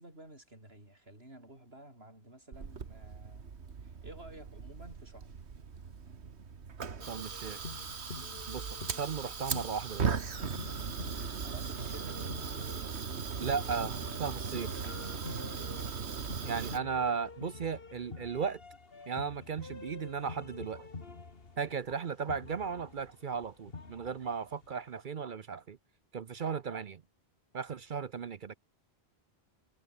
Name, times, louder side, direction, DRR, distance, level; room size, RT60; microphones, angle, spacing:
voice 1, 0.0-3.5 3.8-5.4 8.1-8.5 10.7-11.0 11.4-12.2, right 1 dB, 70° right, 8.1 m, -52 dB
Fire, 2.5-16.8, right 5 dB, 90° right, 1.8 m, -38 dB
sound 1, 7.0-24.7, left 3 dB, 60° left, 2.4 m, -48 dB
voice 2, 7.1-7.6 8.5-8.6 8.9-10.1 13.4-14.7 16.4-18.6 19.1-20.9 21.6-25.8 26.1-27.0 27.5-28.6, right 6 dB, 55° right, 0.8 m, -36 dB
omnidirectional pair, 1.1 m